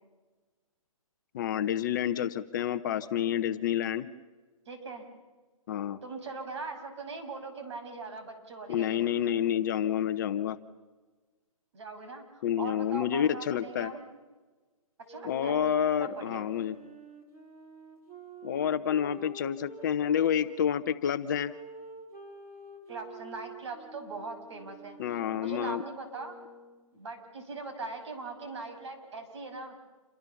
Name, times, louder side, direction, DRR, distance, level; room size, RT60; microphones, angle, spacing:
voice 1, 1.3-4.1 5.7-6.0 8.7-10.6 12.4-13.9 15.2-16.8 18.4-21.5 25.0-25.8, left 9 dB, 35° left, 10 dB, 0.9 m, -29 dB
voice 2, 4.7-5.0 6.0-9.0 11.7-14.0 15.1-15.6 16.0-16.4 22.9-26.4 26.9-29.8, right 3 dB, 50° right, 5 dB, 6.5 m, -41 dB
sound 1, 15.1-20.7 21.4-26.9, right 2 dB, 15° right, 3.5 m, -48 dB
28.5 x 25.0 x 7.1 m, 1.3 s
hypercardioid pair, 160°, 18 cm